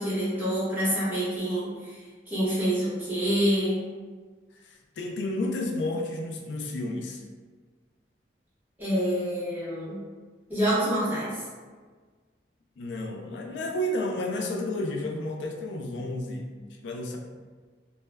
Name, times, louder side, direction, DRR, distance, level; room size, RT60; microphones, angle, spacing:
voice 1, 0.0-1.9 2.3-3.8 8.8-10.0 10.5-11.3, equal, 10° right, -10 dB, 0.8 m, -27 dB
voice 2, 4.5-7.2 12.8-16.5 16.8-17.2, left 1 dB, 80° left, 2 dB, 0.3 m, -31 dB
2.2 x 2.0 x 3.2 m, 1.5 s
head